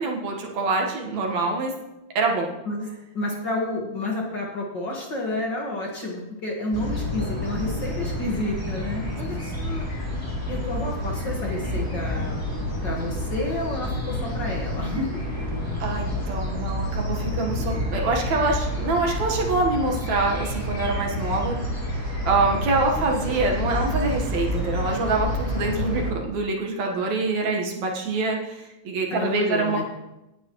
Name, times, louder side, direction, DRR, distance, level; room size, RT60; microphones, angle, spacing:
voice 1, 0.0-1.7 2.2-2.5 9.3-9.4 15.8-21.7 22.3-29.9, right 3 dB, 70° right, 0 dB, 2.7 m, -25 dB
voice 2, 3.1-9.9 10.5-12.4 12.8-15.2 29.1-29.9, left 1 dB, 45° left, -1 dB, 2.0 m, -30 dB
sound 1, 6.7-26.1, left 1 dB, 5° left, 2.9 m, -29 dB
18.0 x 9.8 x 3.1 m, 0.97 s
omnidirectional pair, 3.4 m